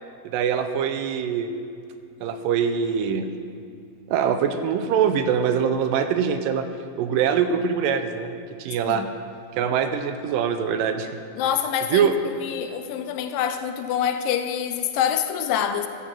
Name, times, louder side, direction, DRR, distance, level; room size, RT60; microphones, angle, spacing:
voice 1, 0.3-1.5 2.2-3.3 4.1-6.7 7.0-8.3 8.6-9.0 9.6-11.1 11.9-12.1, right 7 dB, 80° right, 9 dB, 2.2 m, -23 dB
voice 2, 11.4-15.9, left 9 dB, 85° left, 8 dB, 2.2 m, -26 dB
14.0 x 7.4 x 7.5 m, 2.4 s
omnidirectional pair, 4.2 m